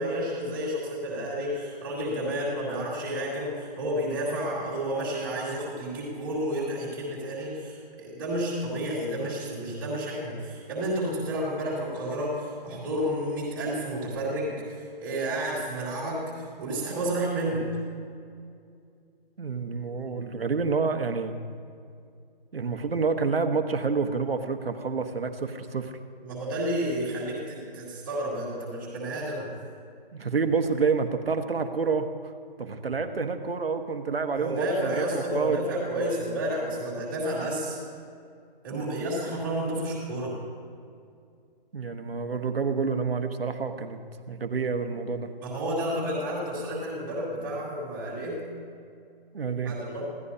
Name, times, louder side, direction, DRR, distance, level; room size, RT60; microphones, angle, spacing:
voice 1, 0.0-17.7 20.1-20.2 26.2-29.5 34.3-37.8 38.6-40.3 45.4-48.4 49.6-50.1, right 1 dB, 5° right, -10 dB, 2.2 m, -31 dB
voice 2, 19.4-21.4 22.5-25.9 30.1-32.3 32.6-35.6 38.7-39.1 41.7-44.0 44.3-45.3 49.3-49.7, right 5 dB, 75° right, 6 dB, 1.4 m, -28 dB
26.0 x 16.0 x 2.8 m, 2.4 s
hypercardioid pair, 175°, 30 cm